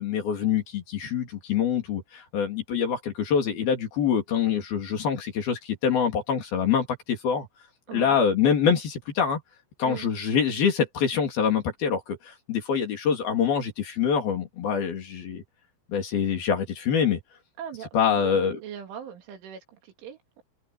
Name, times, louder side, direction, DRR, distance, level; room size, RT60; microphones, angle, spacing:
voice 1, 0.0-7.5 7.9-9.4 9.8-15.4 15.9-17.2 17.9-18.6, left 7 dB, 55° left, 4.8 m, -25 dB
voice 2, 7.9-8.2 9.8-10.1 17.6-20.4, right 8 dB, 80° right, 5.3 m, -40 dB
omnidirectional pair, 5.5 m